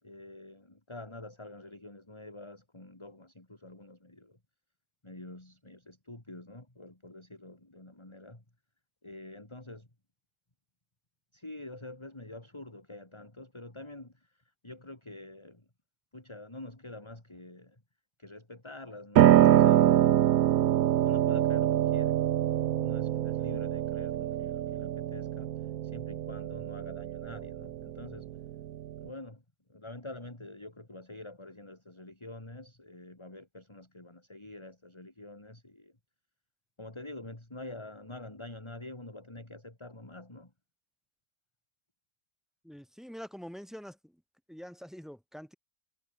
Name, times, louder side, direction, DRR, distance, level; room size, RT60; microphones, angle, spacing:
voice 1, 0.0-4.4 5.0-8.4 9.0-9.9 11.3-15.7 16.1-17.8 18.2-20.4 21.0-28.4 29.0-36.0 36.8-40.5, left 2 dB, 20° left, 3.1 m, -47 dB
Piano, 19.2-29.1, right 12 dB, 80° right, 1.2 m, -25 dB
voice 2, 42.6-44.2 44.5-45.5, equal, ahead, 5.9 m, -45 dB
omnidirectional pair, 1.5 m